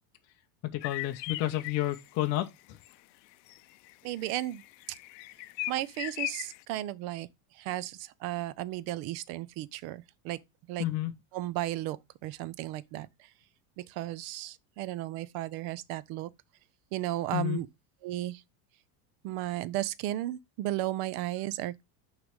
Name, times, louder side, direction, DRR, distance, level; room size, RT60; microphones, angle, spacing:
voice 1, 0.6-2.8 10.8-11.1 17.3-17.6, left 14 dB, 35° left, 0.6 m, -31 dB
sound 1, 0.8-2.1 2.8-2.9 3.3-6.6, left 19 dB, 85° left, 0.6 m, -39 dB
voice 2, 4.0-4.6 5.7-7.3 7.6-10.4 10.7-10.9 11.3-12.0 12.2-13.1 13.8-16.3 16.9-17.7 18.0-18.4 19.2-21.8, right 15 dB, 50° right, 0.6 m, -34 dB
6.2 x 3.3 x 5.1 m
supercardioid pair, 150°, 49 cm